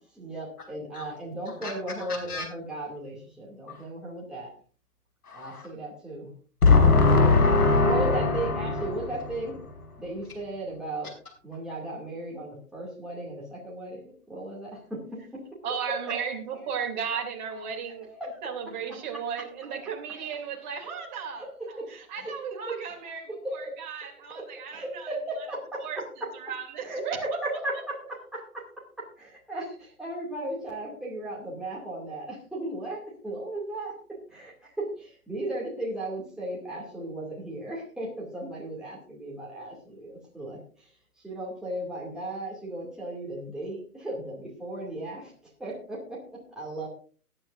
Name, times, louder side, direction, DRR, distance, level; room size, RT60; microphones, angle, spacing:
voice 1, 0.1-4.5 5.3-6.3 7.8-9.6 10.0-11.1 11.4-15.4 15.9-16.6 17.1-18.4 18.7-19.8 20.6-22.3 22.7-26.4 26.8-40.9 41.2-45.3 45.6-46.9, right 1 dB, ahead, -4 dB, 2.2 m, -36 dB
voice 2, 2.1-2.4 5.3-5.6 6.6-9.1, left 3 dB, 75° left, 2 dB, 5.4 m, -21 dB
voice 3, 15.6-18.1 18.4-21.5 21.9-25.1 25.8-26.0 26.3-27.4, right 7 dB, 30° right, 2 dB, 2.8 m, -35 dB
19.0 x 9.9 x 2.5 m, 0.40 s
hypercardioid pair, 155°, 45 cm